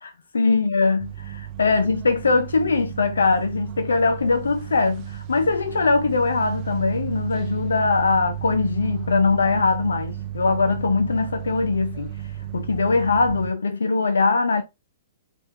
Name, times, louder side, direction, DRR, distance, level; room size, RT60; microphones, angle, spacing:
voice 1, 0.0-12.2 12.5-14.6, left 4 dB, 85° left, 0.6 m, -21 dB
sound 1, 1.0-13.5, right 12 dB, 40° right, 0.5 m, -34 dB
4.4 x 2.6 x 3.2 m
hypercardioid pair, 125°, 0 cm